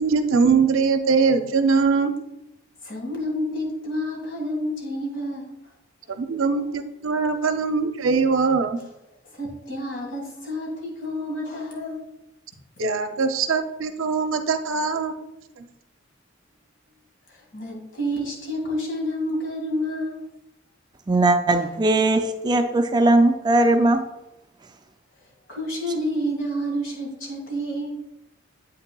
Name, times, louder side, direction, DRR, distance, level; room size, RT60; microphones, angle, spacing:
voice 1, 0.0-2.1 6.1-8.8 12.8-15.1, right 5 dB, 80° right, 8 dB, 0.6 m, -22 dB
voice 2, 2.8-5.5 9.3-12.1 17.3-20.2 21.6-21.7 22.1-22.2 25.5-28.0, equal, 65° left, -1 dB, 1.9 m, -29 dB
voice 3, 21.1-24.0, right 2 dB, 20° right, 7 dB, 0.3 m, -19 dB
8.3 x 5.6 x 2.3 m, 0.88 s
head